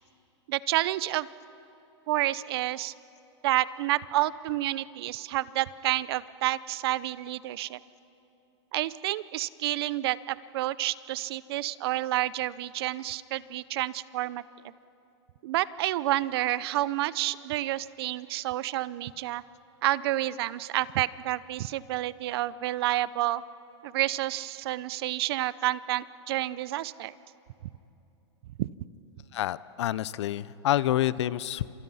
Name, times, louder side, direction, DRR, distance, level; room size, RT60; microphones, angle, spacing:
voice 1, 0.5-1.3 2.1-2.9 3.4-7.8 8.7-14.4 15.4-19.4 19.8-23.4 23.8-27.1 28.6-28.7, right 15 dB, 55° right, 18 dB, 0.7 m, -29 dB
voice 2, 29.3-31.7, left 13 dB, 70° left, 18 dB, 0.7 m, -28 dB
29.5 x 26.5 x 5.7 m, 2.9 s
supercardioid pair, 145°, 15 cm